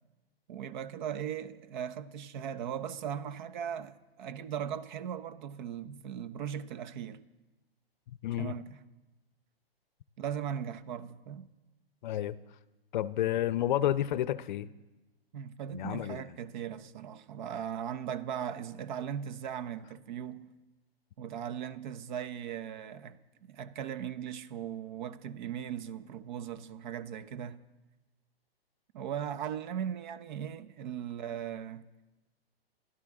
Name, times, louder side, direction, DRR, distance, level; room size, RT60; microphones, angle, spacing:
voice 1, 0.5-7.2 8.4-8.8 10.2-11.5 15.3-20.5 21.2-27.6 28.9-31.9, right 9 dB, 50° right, 0.9 m, -38 dB
voice 2, 8.1-8.6 12.0-12.4 12.9-14.7 15.7-16.4, left 12 dB, 50° left, 0.7 m, -31 dB
28.5 x 12.5 x 3.7 m
hypercardioid pair, 130°, 31 cm